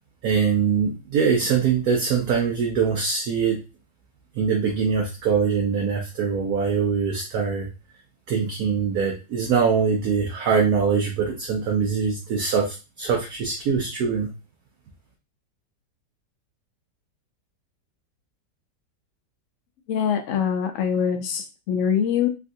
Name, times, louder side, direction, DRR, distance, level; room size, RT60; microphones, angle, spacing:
voice 1, 0.2-3.6 4.4-7.7 8.3-14.3, right 6 dB, 65° right, 0 dB, 1.1 m, -23 dB
voice 2, 19.9-22.3, left 8 dB, 75° left, 5 dB, 0.7 m, -24 dB
3.5 x 2.5 x 2.6 m, 0.28 s
omnidirectional pair, 1.9 m